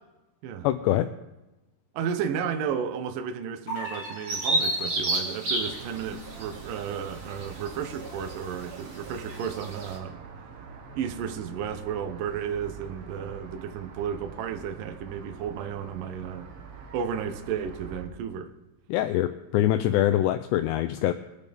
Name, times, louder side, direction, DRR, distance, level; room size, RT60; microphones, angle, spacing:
voice 1, 0.6-1.1 18.9-21.1, left 13 dB, 80° left, 7 dB, 2.6 m, -24 dB
voice 2, 1.9-10.2 10.9-16.5 16.9-18.5, right 7 dB, 80° right, 7 dB, 1.9 m, -33 dB
sound 1, 3.7-5.3, right 2 dB, 25° left, 4.3 m, -39 dB
Bird vocalization bird call bird song, 4.3-10.0, right 2 dB, 40° right, 2.4 m, -31 dB
sound 2, 5.5-18.1, right 4 dB, 65° right, 2.8 m, -45 dB
23.5 x 8.3 x 3.5 m, 1.0 s
omnidirectional pair, 5.2 m